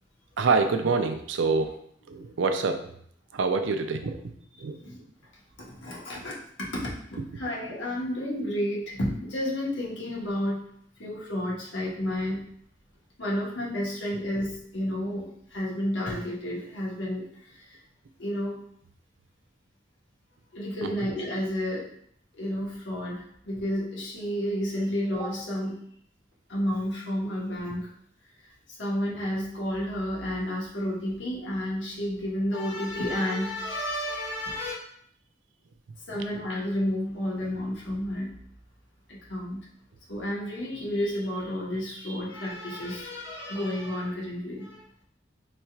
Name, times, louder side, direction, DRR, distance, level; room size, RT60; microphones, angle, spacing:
voice 1, 0.4-1.8 2.1-2.9 3.3-4.3 4.6-4.8 20.8-21.1, right 4 dB, 90° right, 7 dB, 0.5 m, -26 dB
voice 2, 5.7-10.6 11.0-12.4 13.2-17.2 17.5-17.7 18.2-18.6 20.5-21.9 22.3-25.8 26.5-27.9 28.7-34.7 36.1-38.3 39.1-39.6 40.1-44.8, left 1 dB, 85° left, -4 dB, 1.3 m, -31 dB
4.1 x 2.4 x 4.5 m, 0.64 s
head